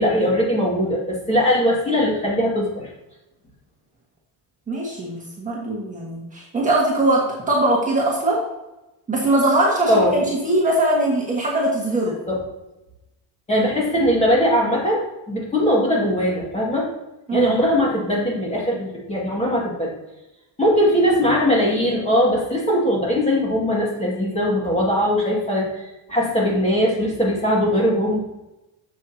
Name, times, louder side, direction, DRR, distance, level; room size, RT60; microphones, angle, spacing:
voice 1, 0.0-2.9 9.9-10.3 12.3-12.4 13.5-16.9 17.3-19.9 20.6-28.2, equal, 15° left, -3 dB, 2.1 m, -20 dB
voice 2, 4.7-8.4 9.1-12.1 17.3-17.6, right 1 dB, 15° right, -4 dB, 1.6 m, -21 dB
11.0 x 7.5 x 2.8 m, 0.98 s
cardioid pair, 165°, 46 cm